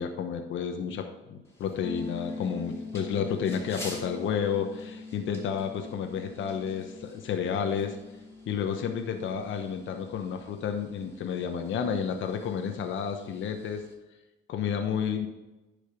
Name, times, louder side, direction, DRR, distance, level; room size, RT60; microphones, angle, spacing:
voice 1, 0.0-8.0 8.5-13.8 14.5-15.3, left 7 dB, 75° left, 5 dB, 1.0 m, -31 dB
sound 1, 1.4-13.9, left 1 dB, 15° left, 3.0 m, -51 dB
sound 2, 1.8-11.5, left 3 dB, 40° left, 2.3 m, -44 dB
10.5 x 5.2 x 5.1 m, 1.1 s
cardioid pair, 90°, 20 cm